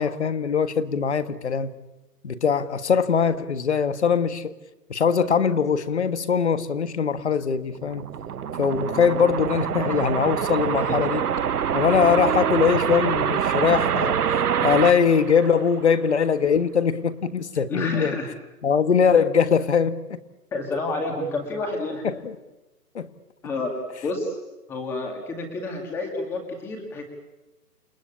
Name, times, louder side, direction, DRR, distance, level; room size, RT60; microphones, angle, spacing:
voice 1, 0.0-1.8 2.2-4.5 4.9-8.1 8.6-11.2 11.7-14.2 14.6-18.2 18.6-20.2 22.0-22.4 23.0-23.1, left 6 dB, 45° left, 1.7 m, -22 dB
sound 1, 7.7-16.1, right 8 dB, 65° right, 0.9 m, -25 dB
voice 2, 17.7-18.3 20.5-22.1 23.4-23.7 24.0-24.4 24.7-27.0, left 2 dB, 5° left, 2.1 m, -29 dB
29.5 x 20.0 x 8.7 m
hypercardioid pair, 175°, 48 cm